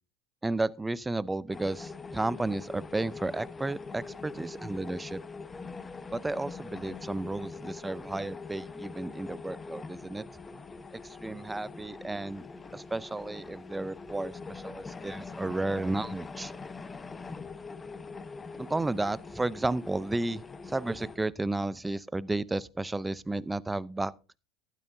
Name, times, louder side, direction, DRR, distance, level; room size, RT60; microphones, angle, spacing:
voice 1, 0.4-5.2 6.1-10.2 10.9-12.4 12.7-16.5 18.6-24.1, right 2 dB, 10° right, 0.6 m, -33 dB
sound 1, 1.5-21.2, left 4 dB, 20° left, 1.0 m, -43 dB
12.5 x 12.5 x 2.7 m
hypercardioid pair, 95°, 0 cm